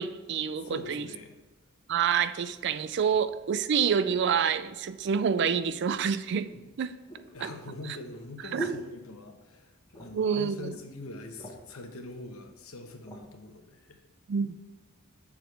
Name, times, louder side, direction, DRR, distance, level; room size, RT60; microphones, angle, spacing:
voice 1, 0.0-1.1 1.9-6.5 6.8-6.9 7.4-7.5 8.5-8.7 10.1-10.8 14.3-14.6, right 7 dB, 55° right, 13 dB, 0.4 m, -27 dB
voice 2, 0.6-1.4 7.3-14.0, left 2 dB, 75° left, 5 dB, 0.9 m, -43 dB
sound 1, 6.5-9.6 9.9-10.4 10.7-10.8 11.1-11.8 12.5-13.3 13.9-14.1, right 2 dB, 20° left, 1.1 m, -41 dB
7.1 x 4.9 x 4.6 m, 1.1 s
head